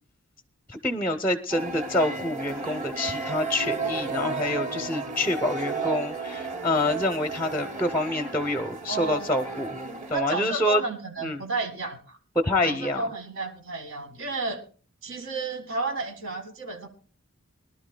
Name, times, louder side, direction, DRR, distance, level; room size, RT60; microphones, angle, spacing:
voice 1, 0.7-9.8 10.1-10.8 11.2-11.4 12.4-13.0, left 1 dB, 10° left, 7 dB, 0.6 m, -27 dB
sound 1, 1.5-10.2, right 3 dB, 35° right, 3.1 m, -33 dB
voice 2, 8.9-9.3 10.1-12.2 12.6-14.6 15.0-16.9, right 3 dB, 70° right, 7 dB, 1.8 m, -32 dB
23.0 x 12.0 x 2.2 m, 0.38 s
head